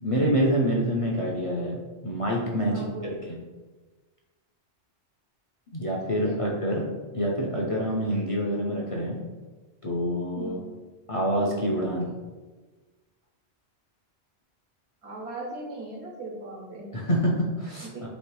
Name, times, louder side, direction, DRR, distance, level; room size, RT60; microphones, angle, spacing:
voice 1, 0.0-3.1 5.7-6.8 7.1-9.2 9.8-10.6 11.1-12.1 16.9-18.1, equal, 40° left, -2 dB, 0.5 m, -26 dB
voice 2, 2.7-3.1 6.2-6.4 10.3-10.7 15.0-16.9 17.9-18.1, right 2 dB, 75° right, -2 dB, 1.3 m, -38 dB
3.2 x 3.2 x 4.6 m, 1.3 s
omnidirectional pair, 1.1 m